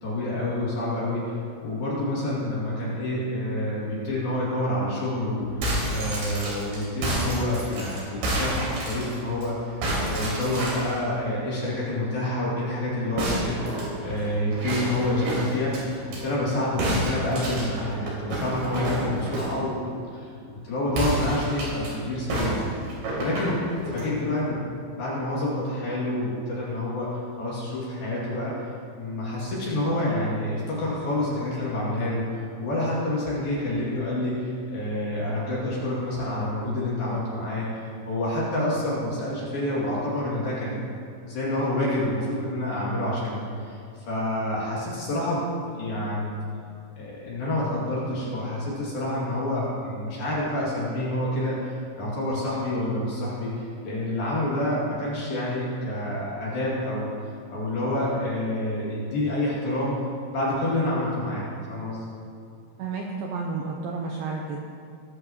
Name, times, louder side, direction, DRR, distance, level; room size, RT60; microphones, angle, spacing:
voice 1, 0.0-5.6 5.9-13.6 14.0-19.8 20.1-20.3 20.6-22.9 23.2-23.6 23.9-24.6 25.0-27.1 27.4-28.7 29.0-32.3 32.6-40.8 41.2-43.8 44.1-46.3 47.0-57.1 57.5-60.0 60.3-62.0, left 1 dB, 55° left, -7 dB, 4.0 m, -28 dB
sound 1, 5.4-9.5 9.8-11.0 13.2-16.2 16.8-19.6 20.9-21.9 22.3-24.1, right 1 dB, 65° right, 5.5 m, -29 dB
voice 2, 62.8-64.6, right 4 dB, 80° right, -1 dB, 2.1 m, -31 dB
21.0 x 11.5 x 3.1 m, 2.5 s
omnidirectional pair, 5.3 m